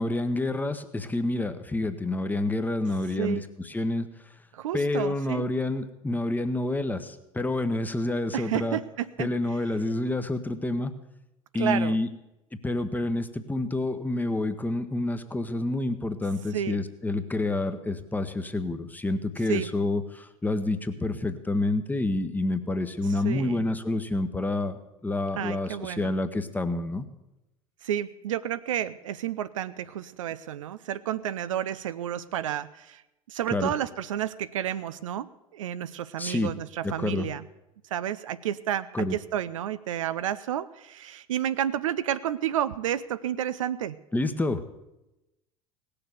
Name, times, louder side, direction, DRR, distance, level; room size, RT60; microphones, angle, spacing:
voice 1, 0.0-4.1 4.7-8.8 9.2-10.9 11.5-12.1 12.6-27.1 33.5-33.7 36.2-36.5 36.8-37.3 38.9-39.2 44.1-44.7, left 2 dB, 10° left, 9 dB, 1.1 m, -28 dB
voice 2, 4.5-5.5 8.3-9.3 11.5-12.0 16.5-16.8 19.5-19.7 23.2-23.7 25.4-26.1 27.8-33.0 33.3-37.4 37.9-44.0, right 10 dB, 70° right, 14 dB, 0.5 m, -31 dB
18.0 x 6.9 x 8.0 m, 0.94 s
figure-of-eight pair, 70°, 18 cm